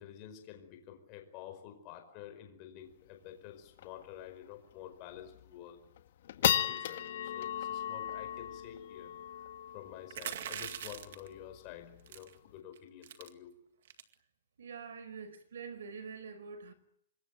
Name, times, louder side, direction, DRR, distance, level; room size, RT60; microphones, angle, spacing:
voice 1, 0.0-5.9 6.4-9.3 9.7-13.5, left 10 dB, 25° left, 4.9 m, -50 dB
sound 1, 2.9-3.0 3.3-3.4 3.8-4.0 4.5-4.6 5.2-5.5 5.9-12.5, left 11 dB, 45° left, 1.8 m, -36 dB
sound 2, 10.1-11.3 12.1-12.4 12.7-12.8 13.0-13.3 13.9-14.1, right 9 dB, 50° right, 2.1 m, -41 dB
voice 2, 14.6-16.7, right 5 dB, 75° right, 5.4 m, -45 dB
26.5 x 22.0 x 9.2 m
hypercardioid pair, 180°, 0 cm